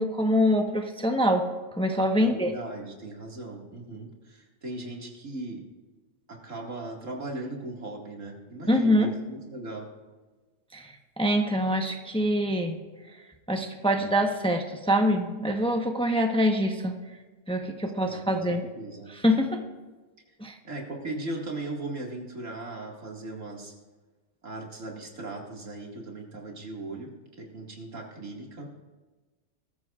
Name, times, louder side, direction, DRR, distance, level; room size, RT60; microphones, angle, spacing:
voice 1, 0.0-1.5 1.8-2.5 8.7-9.1 10.7-12.8 13.5-16.9 17.5-18.7 19.1-19.6 20.4-20.6, equal, 5° left, 3 dB, 0.9 m, -25 dB
voice 2, 2.2-5.6 6.3-9.9 18.0-19.1 20.6-23.7 24.4-27.1 27.4-28.7, right 2 dB, 90° right, -1 dB, 2.5 m, -38 dB
20.5 x 14.0 x 2.5 m, 1.3 s
omnidirectional pair, 1.3 m